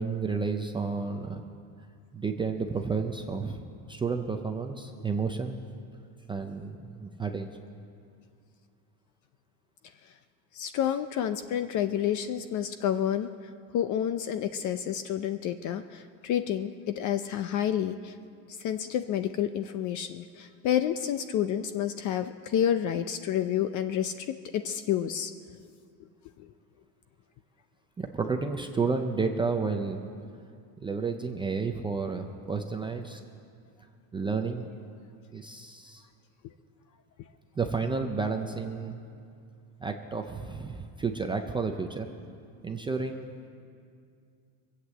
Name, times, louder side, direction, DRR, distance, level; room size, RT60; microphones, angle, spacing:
voice 1, 0.0-1.4 2.1-5.6 6.3-7.5 28.0-30.0 30.8-33.2 34.1-34.7 35.3-36.0 37.6-39.0 39.8-42.1 42.6-43.3, right 4 dB, 10° right, 4 dB, 0.3 m, -31 dB
voice 2, 10.5-13.3 13.7-18.1 18.5-24.3 24.5-25.3 26.4-26.5, left 10 dB, 40° left, 10 dB, 0.5 m, -29 dB
21.5 x 8.2 x 7.5 m, 2.3 s
supercardioid pair, 130°, 48 cm